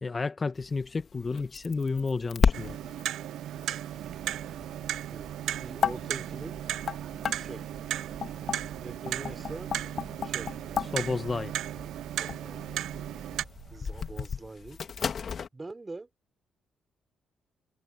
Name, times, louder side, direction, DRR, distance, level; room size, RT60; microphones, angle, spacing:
voice 1, 0.0-2.8 10.8-11.5, left 4 dB, 30° left, 0.9 m, -31 dB
sound 1, 0.6-15.5, left 7 dB, 50° left, 1.7 m, -34 dB
Clock, 2.5-13.4, right 12 dB, 80° right, 0.3 m, -36 dB
sound 2, 3.9-14.3, right 8 dB, 60° right, 6.3 m, -49 dB
voice 2, 5.1-6.6 7.4-7.7 8.8-9.8 10.2-10.6 12.2-12.8 13.7-15.1 15.5-16.1, right 3 dB, 20° right, 5.1 m, -43 dB
cardioid pair, 90°, 0 cm